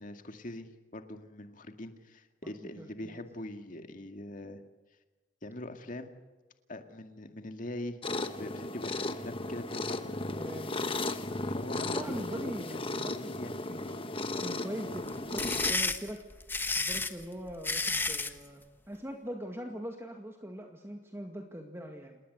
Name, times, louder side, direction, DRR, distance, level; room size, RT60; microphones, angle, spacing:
voice 1, 0.0-4.6 5.4-6.1 6.7-8.0 8.4-10.0 11.4-13.5, left 1 dB, 45° left, 6 dB, 2.1 m, -43 dB
voice 2, 2.4-3.2 10.3-10.8 11.9-14.0 14.4-16.2 16.8-22.2, equal, 15° right, 3 dB, 2.1 m, -42 dB
sound 1, 8.0-15.7, left 2 dB, 30° left, 1.4 m, -35 dB
sound 2, 15.1-18.4, left 3 dB, 10° left, 1.3 m, -31 dB
28.5 x 20.5 x 8.1 m, 1.2 s
head